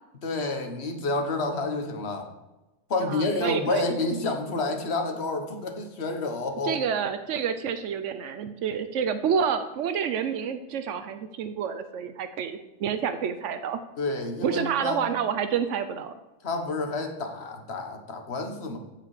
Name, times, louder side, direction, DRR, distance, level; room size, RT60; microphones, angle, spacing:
voice 1, 0.2-2.3 2.9-6.8 14.0-15.0 16.4-18.8, left 2 dB, 60° left, 5 dB, 1.5 m, -29 dB
voice 2, 3.0-4.0 6.6-13.8 14.4-16.1, right 7 dB, 85° right, 10 dB, 1.0 m, -28 dB
15.0 x 5.0 x 4.9 m, 1.0 s
omnidirectional pair, 1.2 m